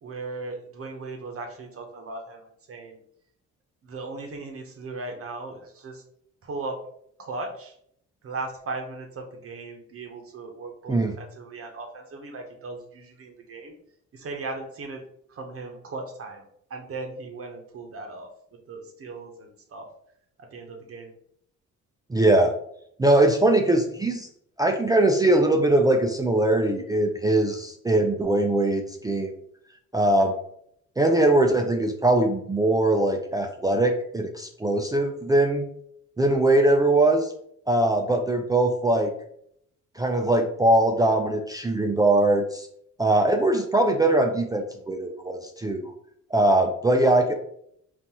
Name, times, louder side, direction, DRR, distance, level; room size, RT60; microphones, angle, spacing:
voice 1, 0.0-3.0 3.8-6.0 6.4-6.8 7.2-7.7 8.2-13.7 14.1-15.0 15.3-16.4 16.7-18.3 18.7-19.9 20.4-21.1, right 3 dB, 50° right, 2 dB, 0.7 m, -37 dB
voice 2, 22.1-22.5 23.0-24.3 24.6-29.3 29.9-30.3 31.0-35.7 36.2-37.3 37.7-39.1 40.0-42.7 43.0-45.9 46.3-47.3, right 2 dB, 15° right, 3 dB, 0.3 m, -21 dB
3.8 x 2.4 x 2.8 m, 0.69 s
cardioid pair, 90°, 30 cm